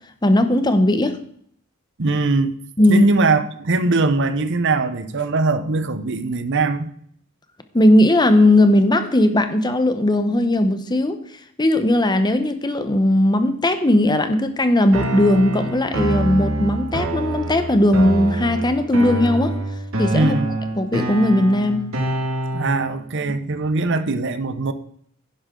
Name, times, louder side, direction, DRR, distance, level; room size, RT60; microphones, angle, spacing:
voice 1, 0.2-1.1 2.8-3.0 7.7-11.2 11.6-19.5 20.0-20.3 20.8-21.8, left 1 dB, 20° left, 9 dB, 0.9 m, -17 dB
voice 2, 2.0-2.5 2.9-6.9 20.1-20.5 22.5-24.7, right 3 dB, 60° right, 11 dB, 0.8 m, -21 dB
sound 1, 14.9-22.9, right 1 dB, 75° right, 2.0 m, -26 dB
10.5 x 10.5 x 3.8 m, 0.65 s
head